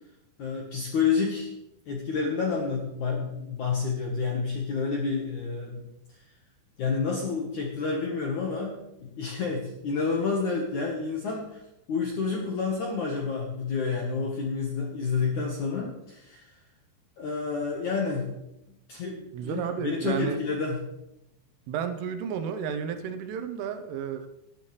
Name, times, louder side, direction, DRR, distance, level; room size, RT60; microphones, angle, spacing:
voice 1, 0.4-1.5 1.9-5.9 6.8-11.6 11.9-16.5 17.2-18.3 18.9-20.8, left 5 dB, 65° left, -1 dB, 1.9 m, -29 dB
voice 2, 19.3-20.4 21.7-24.3, right 7 dB, 85° right, 8 dB, 3.5 m, -32 dB
18.5 x 10.0 x 3.3 m, 0.87 s
omnidirectional pair, 5.5 m